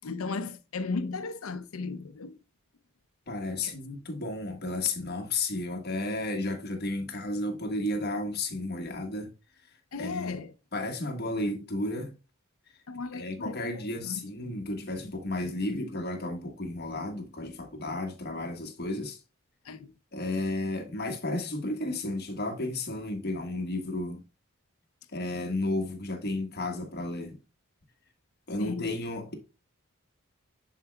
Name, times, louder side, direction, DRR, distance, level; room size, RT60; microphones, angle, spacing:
voice 1, 0.0-2.4 3.6-3.7 9.9-10.5 12.9-14.3 19.7-19.9 28.6-28.9, left 4 dB, 85° left, 0.6 m, -36 dB
voice 2, 3.3-9.3 10.0-10.4 10.7-12.1 13.1-19.2 20.1-24.2 25.1-27.4 28.5-29.3, left 2 dB, 50° left, 1.4 m, -33 dB
7.2 x 6.8 x 2.2 m
head